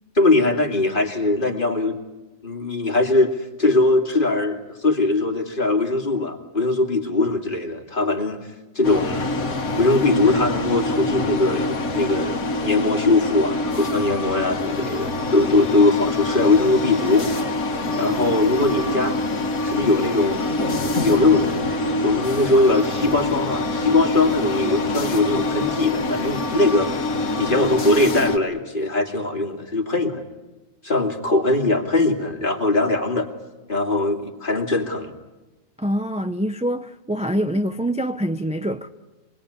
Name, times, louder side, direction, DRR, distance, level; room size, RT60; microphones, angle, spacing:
voice 1, 0.1-2.0 2.4-8.4 8.7-9.3 9.8-17.3 18.0-19.4 19.6-20.5 21.0-21.6 22.0-27.1 27.3-30.2 30.8-33.3 33.7-35.1, left 2 dB, 35° left, 2.8 m, -21 dB
sound 1, 8.8-28.4, left 2 dB, 85° left, 2.1 m, -25 dB
voice 2, 35.8-38.9, equal, 10° right, 0.5 m, -25 dB
25.5 x 20.5 x 10.0 m
omnidirectional pair, 1.4 m